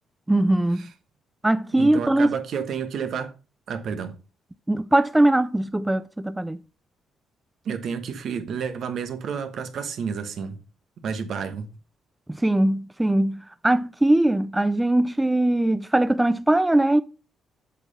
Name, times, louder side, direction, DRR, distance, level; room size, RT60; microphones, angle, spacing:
voice 1, 0.3-0.9 1.4-2.4 4.7-6.6 12.3-17.0, right 1 dB, 10° right, 0.4 m, -21 dB
voice 2, 1.8-3.3 3.7-4.1 7.6-10.6 11.0-11.7, right 6 dB, 65° right, 1.3 m, -30 dB
8.1 x 4.4 x 5.4 m
cardioid pair, 90°, 0 cm